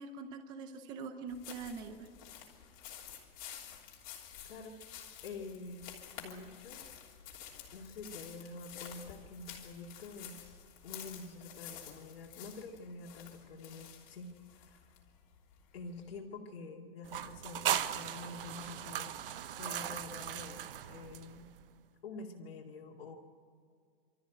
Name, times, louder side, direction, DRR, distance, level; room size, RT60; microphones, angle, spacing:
voice 1, 0.0-2.1, right 4 dB, 15° right, 8 dB, 0.7 m, -43 dB
sound 1, 1.3-16.2, left 9 dB, 35° left, 3.3 m, -51 dB
voice 2, 5.2-5.9 6.1-6.9 7.7-15.0 15.7-19.1 19.5-20.6 20.9-21.5 22.0-23.2, left 3 dB, 80° left, -1 dB, 2.5 m, -47 dB
sound 2, 17.0-21.6, right 10 dB, 65° right, 1.0 m, -38 dB
25.5 x 13.5 x 9.2 m, 2.2 s
supercardioid pair, 175°, 30 cm